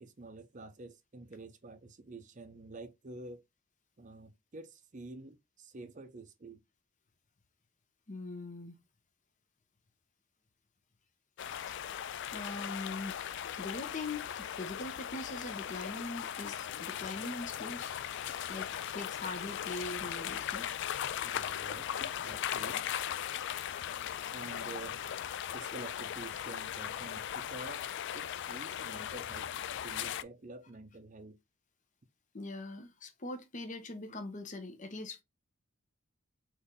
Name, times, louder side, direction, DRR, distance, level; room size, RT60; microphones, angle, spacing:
voice 1, 0.0-3.4 4.0-6.6 21.2-22.8 24.3-25.0 25.5-27.9 28.1-29.5 29.8-31.4, right 2 dB, 40° right, 0.6 m, -48 dB
voice 2, 8.1-8.8 11.7-11.8 12.3-17.9 18.5-20.7 32.3-35.2, left 2 dB, 35° left, 0.9 m, -42 dB
sound 1, 11.4-30.2, left 10 dB, 60° left, 0.3 m, -38 dB
4.0 x 3.1 x 3.6 m
head